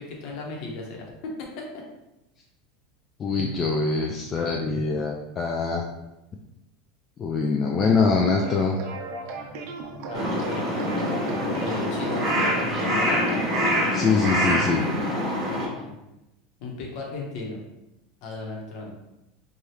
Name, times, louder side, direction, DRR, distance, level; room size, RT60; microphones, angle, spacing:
voice 1, 0.0-1.8 10.1-13.2 15.5-16.0 16.6-17.6 18.2-18.9, left 2 dB, 60° left, -1 dB, 0.8 m, -36 dB
voice 2, 3.2-5.8 7.2-8.8 13.9-14.8, left 4 dB, 30° left, 0 dB, 0.3 m, -23 dB
sound 1, 8.2-13.8, right 2 dB, 65° right, 0.5 m, -36 dB
Crow, 10.1-15.7, equal, 30° right, 1.3 m, -25 dB
3.2 x 2.3 x 2.8 m, 0.94 s
supercardioid pair, 110°, 0 cm